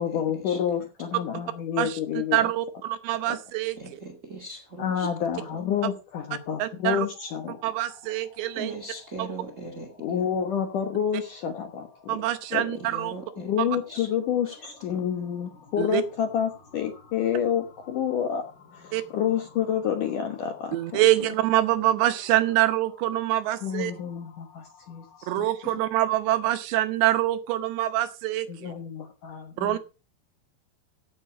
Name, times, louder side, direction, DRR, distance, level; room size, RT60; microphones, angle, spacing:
voice 1, 0.0-2.5 3.3-3.4 4.8-7.6 10.0-12.2 12.5-12.7 13.4-18.4 18.7-21.0 23.6-25.5 28.5-29.8, left 8 dB, 65° left, 6 dB, 2.1 m, -29 dB
voice 2, 2.3-3.8 6.6-7.1 7.6-8.7 12.1-13.1 15.8-16.0 18.9-19.0 20.7-23.9 25.3-28.7 29.6-29.8, right 14 dB, 75° right, 11 dB, 2.9 m, -25 dB
voice 3, 3.8-5.1 5.4-5.6 8.5-10.4 12.8-13.5 13.9-14.1 14.4-14.6 14.9-15.1, right 2 dB, 55° right, 2 dB, 0.8 m, -40 dB
sound 1, 7.1-26.5, left 4 dB, 45° left, 7.3 m, -54 dB
16.0 x 7.3 x 5.0 m, 0.32 s
omnidirectional pair, 5.4 m